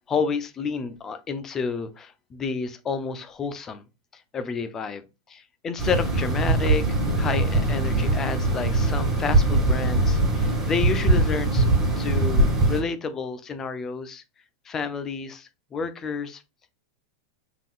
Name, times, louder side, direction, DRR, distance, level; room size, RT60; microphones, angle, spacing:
voice 1, 0.1-3.8 4.3-5.0 5.3-6.8 7.1-11.7 12.0-14.2 14.7-16.4, left 5 dB, 15° left, 0.6 m, -30 dB
sound 1, 5.8-12.8, right 2 dB, 10° right, 2.1 m, -22 dB
5.7 x 3.8 x 2.4 m
supercardioid pair, 160°, 2 cm